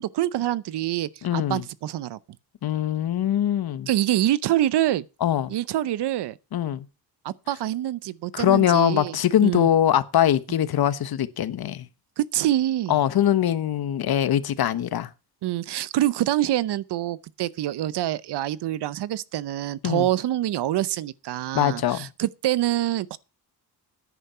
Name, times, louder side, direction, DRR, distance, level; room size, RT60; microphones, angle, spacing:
voice 1, 0.0-2.2 3.9-5.0 5.5-6.3 7.2-9.7 12.2-13.0 15.4-23.2, right 13 dB, 75° right, 0.8 m, -26 dB
voice 2, 1.2-1.6 2.6-3.9 5.2-5.5 6.5-6.8 8.3-11.9 12.9-15.1 19.8-20.1 21.5-22.1, left 11 dB, 65° left, 1.1 m, -22 dB
10.5 x 9.9 x 5.5 m
cardioid pair, 95°, 40 cm